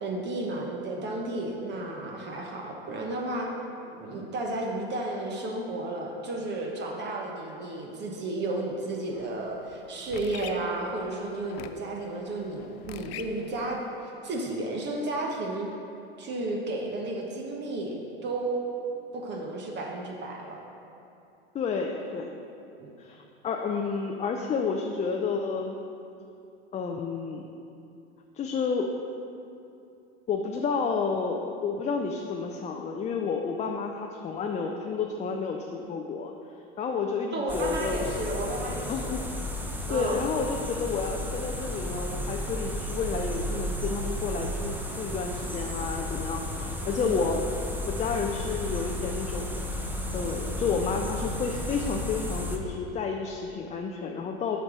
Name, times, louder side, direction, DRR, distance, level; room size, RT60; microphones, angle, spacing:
voice 1, 0.0-3.5 4.0-15.7 16.2-18.7 19.1-20.6 22.8-22.9 37.3-39.1 39.9-40.2 47.0-47.2, right 2 dB, 35° right, 0 dB, 1.1 m, -33 dB
sound 1, 9.1-14.0, left 9 dB, 75° left, 0.5 m, -46 dB
voice 2, 21.5-22.3 23.0-25.8 26.7-27.5 28.3-28.9 30.3-36.3 36.8-38.1 38.9-39.3 39.9-47.5 47.9-49.5 50.1-54.6, left 5 dB, 20° left, 2 dB, 0.5 m, -30 dB
sound 2, 37.5-52.6, left 1 dB, 5° right, 0.8 m, -33 dB
7.6 x 5.2 x 6.1 m, 2.7 s
hypercardioid pair, 95°, 31 cm